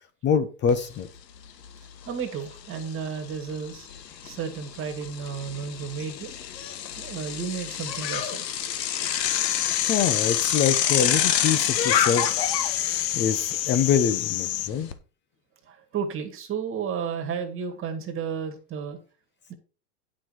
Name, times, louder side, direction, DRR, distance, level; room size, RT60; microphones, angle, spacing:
voice 1, 0.2-1.1 9.9-12.3 12.8-14.9, left 7 dB, 25° left, 0.7 m, -25 dB
Bicycle, 0.7-0.8 1.1-14.9, left 9 dB, 80° left, 1.5 m, -29 dB
voice 2, 2.1-3.9 4.2-6.4 6.7-8.5 12.2-12.3 15.7-19.0, right 6 dB, 25° right, 1.9 m, -33 dB
sound 1, 9.2-14.7, left 14 dB, 50° left, 0.9 m, -28 dB
9.9 x 6.2 x 4.6 m
supercardioid pair, 140°, 49 cm